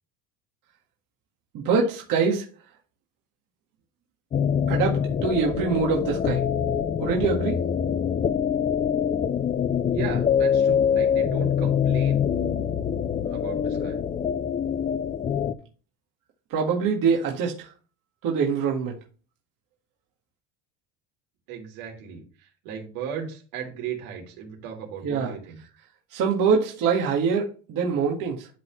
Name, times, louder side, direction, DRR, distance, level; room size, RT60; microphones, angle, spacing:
voice 1, 1.5-2.5 4.7-6.4 7.0-7.6 16.5-17.7 18.2-18.9 25.0-25.3 26.1-28.5, right 5 dB, 50° right, -1 dB, 1.8 m, -24 dB
sound 1, 4.3-15.5, left 8 dB, 20° left, 0.4 m, -24 dB
voice 2, 9.9-12.3 13.3-14.0 21.5-25.6, right 7 dB, 85° right, 0 dB, 3.4 m, -36 dB
12.0 x 4.1 x 3.1 m, 0.37 s
cardioid pair, 130°, 42 cm